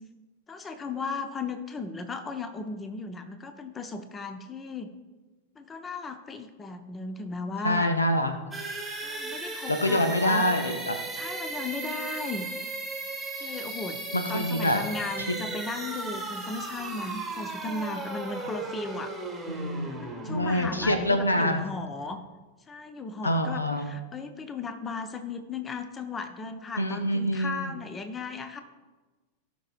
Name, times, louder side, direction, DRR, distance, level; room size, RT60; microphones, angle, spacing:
voice 1, 0.5-4.9 5.6-7.9 9.0-10.5 11.1-12.5 13.4-14.0 14.3-19.2 19.8-22.2 22.7-28.6, left 3 dB, 20° left, 8 dB, 0.8 m, -36 dB
voice 2, 7.6-8.3 9.8-10.9 14.1-14.8 15.3-15.4 19.5-19.9 20.3-21.6 23.2-23.9 26.8-27.7, left 1 dB, 80° left, 7 dB, 0.8 m, -25 dB
sound 1, 8.5-22.2, right 2 dB, 5° right, 1.6 m, -36 dB
17.0 x 6.1 x 2.5 m, 1.3 s
figure-of-eight pair, 90°, 0 cm